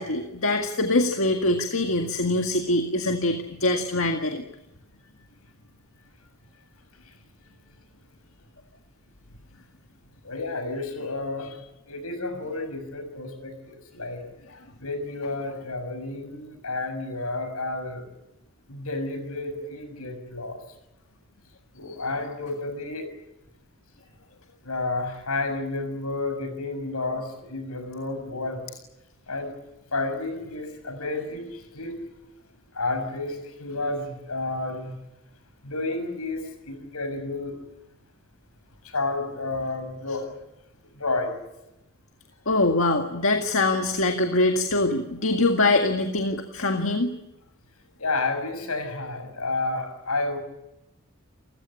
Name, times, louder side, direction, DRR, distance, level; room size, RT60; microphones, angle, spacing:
voice 1, 0.0-4.4 21.9-22.0 42.5-47.1, left 2 dB, 65° left, 3 dB, 1.9 m, -23 dB
voice 2, 10.2-11.6 11.9-14.2 14.8-18.0 18.7-20.6 21.7-23.1 24.6-28.7 29.3-29.5 29.9-32.0 32.7-35.0 35.6-37.6 38.8-40.3 41.0-41.4 48.0-50.4, left 2 dB, 80° left, 7 dB, 6.3 m, -31 dB
29.0 x 16.0 x 9.9 m, 0.92 s
head